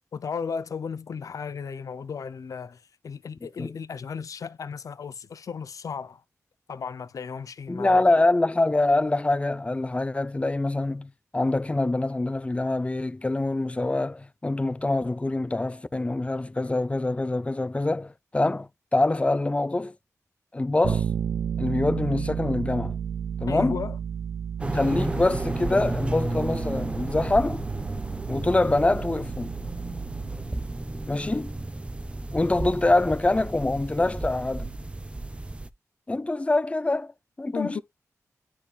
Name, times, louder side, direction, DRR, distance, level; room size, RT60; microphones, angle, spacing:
voice 1, 0.1-2.8 3.0-6.2 6.7-8.0 23.5-24.0 37.5-37.8, left 6 dB, 70° left, 0.6 m, -34 dB
voice 2, 7.7-19.9 20.5-21.1 21.6-23.0 23.4-23.8 24.7-27.6 28.3-29.6 31.1-31.5 32.3-34.7 36.1-37.1 37.4-37.8, left 2 dB, 20° left, 0.5 m, -25 dB
Bass guitar, 20.8-30.7, right 8 dB, 75° right, 0.4 m, -33 dB
sound 1, 24.6-35.7, right 2 dB, 20° right, 0.6 m, -33 dB
9.8 x 4.4 x 2.4 m
cardioid pair, 60°, 6 cm